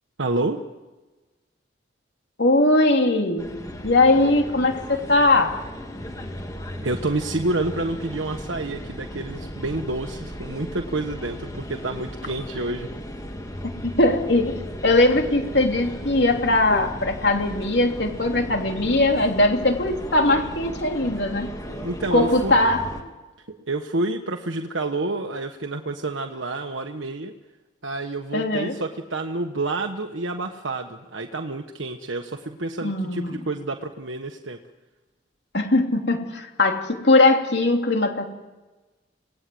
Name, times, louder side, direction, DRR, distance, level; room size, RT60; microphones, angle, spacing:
voice 1, 0.2-0.6 6.8-12.9 21.7-22.5 23.5-27.3 27.8-34.6, right 2 dB, 85° right, 4 dB, 1.4 m, -29 dB
voice 2, 2.4-3.5 3.8-5.6 13.8-14.6 14.8-21.5 22.1-22.9 28.3-28.7 32.8-33.4 35.5-38.4, left 2 dB, 60° left, 3 dB, 3.2 m, -20 dB
sound 1, 3.4-23.0, equal, 20° left, 2.4 m, -36 dB
28.0 x 19.0 x 7.9 m, 1.2 s
head